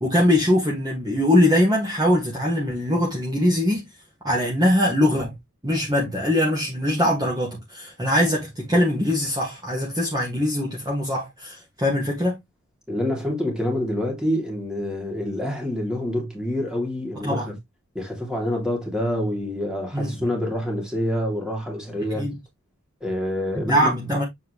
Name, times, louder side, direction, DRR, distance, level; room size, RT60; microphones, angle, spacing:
voice 1, 0.0-3.8 4.2-5.4 5.6-12.4 17.2-17.5 19.9-20.3 22.2-22.3 23.5-24.2, left 1 dB, 20° right, 2.0 m, -22 dB
voice 2, 12.9-17.5 17.9-22.3 23.0-23.9, left 1 dB, 5° right, 2.9 m, -27 dB
7.3 x 4.7 x 3.2 m
head